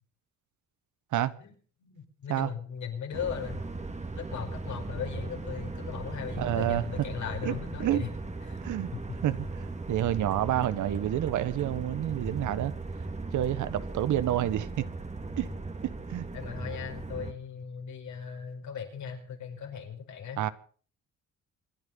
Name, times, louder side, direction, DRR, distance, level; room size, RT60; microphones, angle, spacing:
voice 1, 1.8-3.6 4.2-8.1 8.4-8.6 8.9-9.0 16.3-20.4, left 8 dB, 70° left, 5.2 m, -38 dB
sound 1, 3.1-17.3, right 3 dB, 25° right, 2.2 m, -38 dB
voice 2, 6.4-6.8 7.4-7.5 7.8-8.0 8.6-8.9 9.2-9.5 9.9-12.7 13.3-14.8 15.4-15.5 15.8-16.3 20.4-20.5, right 12 dB, 75° right, 1.3 m, -28 dB
26.5 x 9.8 x 5.6 m
cardioid pair, 90°, 30 cm